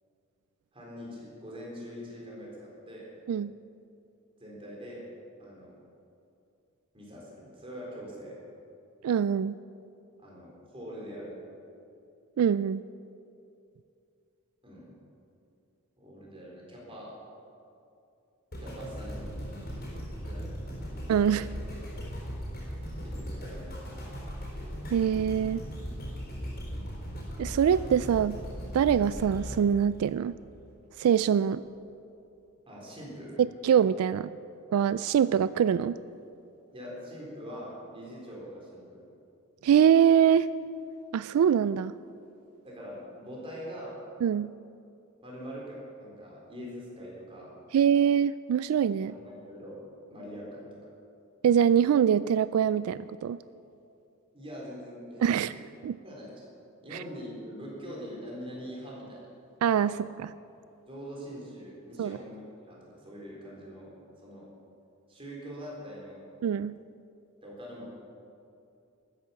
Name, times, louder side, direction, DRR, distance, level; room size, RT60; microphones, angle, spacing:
voice 1, 0.7-3.1 4.4-5.0 5.4-5.8 6.9-8.3 10.2-11.4 14.6-15.0 16.0-17.1 18.6-19.3 20.2-20.6 20.9-21.1 23.0-23.8 32.7-33.4 36.7-39.0 42.6-44.0 45.2-47.5 49.1-49.8 50.1-50.7 54.3-55.3 56.0-56.4 56.8-59.2 59.9-60.0 60.9-63.9 64.2-64.5 65.1-66.2 67.4-67.9, equal, 25° right, -4 dB, 4.0 m, -43 dB
voice 2, 9.0-9.6 12.4-12.8 21.1-21.5 24.9-25.6 27.4-28.4 28.7-30.3 31.0-31.6 33.4-34.3 34.7-36.0 39.6-40.5 41.1-41.9 44.2-44.5 47.7-49.1 51.4-53.4 55.2-55.5 55.8-56.0 56.9-57.0 59.6-60.3 62.0-62.2 66.4-66.7, right 8 dB, 90° right, 16 dB, 0.3 m, -24 dB
sound 1, 18.5-30.7 31.3-31.4, equal, 45° left, 4.2 m, -38 dB
13.0 x 10.5 x 7.1 m, 2.6 s
head